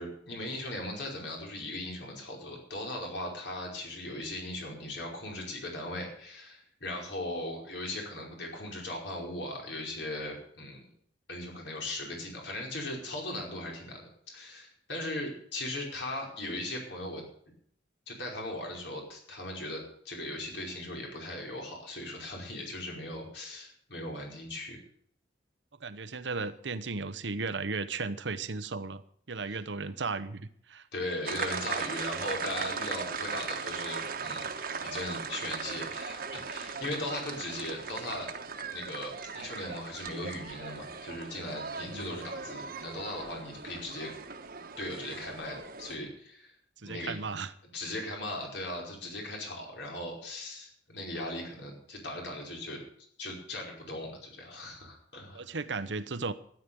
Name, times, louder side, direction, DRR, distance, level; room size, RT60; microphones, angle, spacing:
voice 1, 0.0-10.9 11.3-17.2 18.1-24.8 29.5-29.6 30.9-34.5 34.8-38.3 38.7-44.1 44.8-46.5 46.8-47.1 47.7-52.8 53.2-55.5, left 1 dB, 70° left, 0 dB, 5.2 m, -38 dB
voice 2, 25.8-29.0 29.3-30.9 41.9-42.1 46.8-47.5 55.3-56.3, right 4 dB, 80° right, 13 dB, 0.9 m, -35 dB
sound 1, 31.3-46.0, right 5 dB, 55° right, 1.3 m, -38 dB
13.0 x 10.5 x 7.0 m, 0.62 s
head